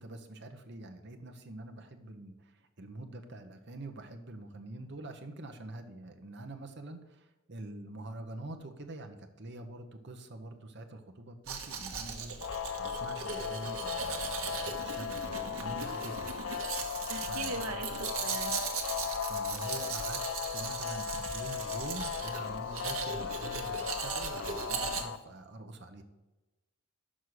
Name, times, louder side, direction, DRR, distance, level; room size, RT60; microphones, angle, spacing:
voice 1, 0.0-16.3 17.2-17.7 19.2-20.2 20.5-26.0, right 2 dB, 50° right, 6 dB, 0.9 m, -45 dB
Domestic sounds home sounds, 11.5-25.0, right 5 dB, 70° right, 1.2 m, -38 dB
sound 1, 12.4-25.2, left 7 dB, 60° left, 0.4 m, -37 dB
voice 2, 17.1-18.6, right 3 dB, 90° right, 5 dB, 0.7 m, -40 dB
6.3 x 5.5 x 6.4 m, 1.1 s
head